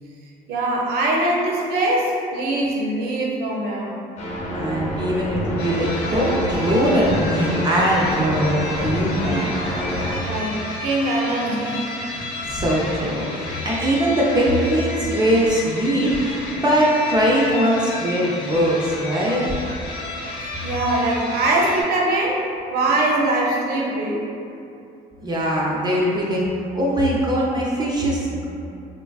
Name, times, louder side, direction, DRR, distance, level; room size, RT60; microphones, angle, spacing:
voice 1, 0.5-3.9 9.8-10.6 10.8-11.9 20.6-24.2, right 1 dB, 70° right, -2 dB, 0.6 m, -22 dB
sound 1, 4.2-10.2, equal, 40° left, 0.7 m, -27 dB
voice 2, 4.5-9.6 12.4-19.5 25.2-26.4 26.7-28.4, equal, 25° right, -5 dB, 0.4 m, -21 dB
sound 2, 5.6-21.8, left 2 dB, 85° left, 0.5 m, -32 dB
3.1 x 2.3 x 2.3 m, 2.6 s
cardioid pair, 110°, 17 cm